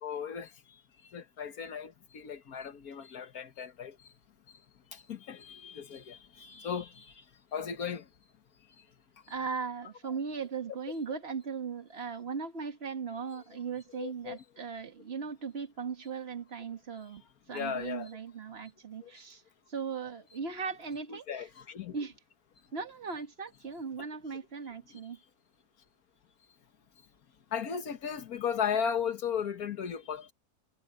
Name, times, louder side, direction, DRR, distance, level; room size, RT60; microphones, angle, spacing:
voice 1, 0.0-0.5 1.1-3.9 4.9-7.1 7.5-8.1 13.9-14.4 17.5-18.2 19.0-19.1 21.1-22.0 27.5-30.3, left 7 dB, 75° left, 1.8 m, -36 dB
voice 2, 9.3-17.2 17.5-19.4 19.7-21.3 21.9-22.1 22.7-25.2, right 5 dB, 45° right, 1.8 m, -38 dB
omnidirectional pair, 1.6 m